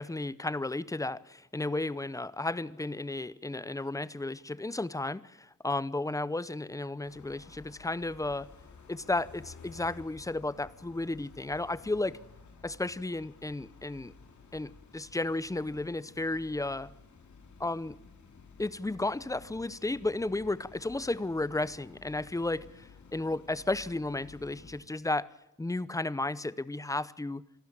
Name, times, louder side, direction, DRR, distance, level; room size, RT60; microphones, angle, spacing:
voice 1, 0.0-8.5 8.9-12.2 12.6-14.1 14.5-16.9 17.6-18.0 18.6-25.3 25.6-27.4, left 2 dB, 10° left, 0.7 m, -33 dB
sound 1, 7.0-24.8, left 4 dB, 70° left, 4.8 m, -54 dB
26.5 x 12.5 x 8.9 m
wide cardioid pair, 110°, 30 cm